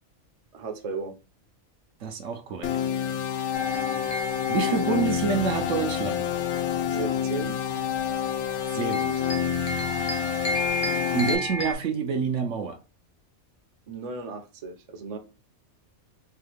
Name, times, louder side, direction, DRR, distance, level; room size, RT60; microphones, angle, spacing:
voice 1, 0.5-1.1 4.6-4.8 6.9-7.6 13.9-15.2, right 4 dB, 35° right, 0.6 m, -35 dB
voice 2, 2.0-2.7 4.5-6.3 8.7-9.3 11.1-12.8, right 6 dB, 65° right, 1.0 m, -27 dB
sound 1, 2.6-11.3, left 9 dB, 65° left, 0.8 m, -28 dB
sound 2, 3.5-11.7, left 1 dB, 40° left, 0.6 m, -34 dB
4.5 x 2.3 x 3.3 m
omnidirectional pair, 1.4 m